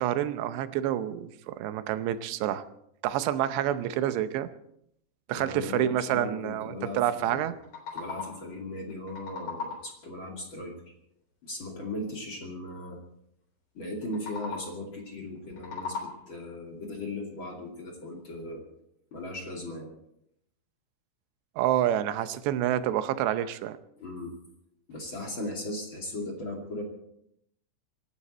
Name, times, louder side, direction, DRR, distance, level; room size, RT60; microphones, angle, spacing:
voice 1, 0.0-2.6 3.0-4.5 5.3-7.5 21.6-23.8, right 11 dB, 90° right, 12 dB, 3.0 m, -28 dB
voice 2, 5.3-7.6 7.9-10.8 11.4-13.0 13.7-18.6 19.1-19.9 24.0-24.3 24.9-26.8, left 1 dB, 35° left, 0 dB, 2.6 m, -38 dB
sound 1, 7.4-8.6 8.9-10.0 14.0-14.9 15.4-16.5, left 4 dB, 60° left, 5.4 m, -39 dB
25.5 x 12.0 x 4.2 m, 0.75 s
omnidirectional pair, 4.8 m